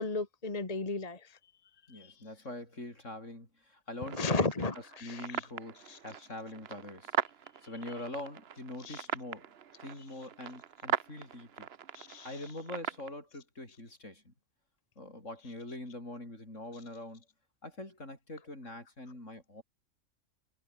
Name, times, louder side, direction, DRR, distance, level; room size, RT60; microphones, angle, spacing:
voice 1, 0.0-1.3 1.9-2.1 4.1-5.4 5.9-6.0 8.8-9.1 11.9-12.4, left 3 dB, 30° left, 1.8 m, -34 dB
voice 2, 1.9-4.5 4.7-7.1 7.6-9.5 9.8-11.7 12.2-14.3 15.0-17.2 17.6-19.6, left 1 dB, 65° left, 7.8 m, -44 dB
sound 1, 4.0-13.1, right 8 dB, 55° right, 1.0 m, -40 dB
omnidirectional pair, 1.4 m